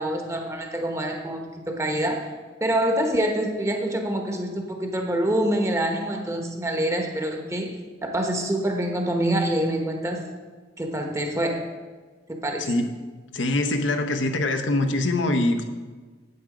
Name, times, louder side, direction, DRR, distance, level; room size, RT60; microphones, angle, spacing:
voice 1, 0.0-2.3 2.6-7.7 8.0-10.2 10.8-11.6 12.3-12.7, right 1 dB, 15° right, 2 dB, 1.1 m, -26 dB
voice 2, 13.3-15.7, left 2 dB, 85° left, 6 dB, 0.9 m, -23 dB
9.6 x 7.8 x 5.0 m, 1.3 s
head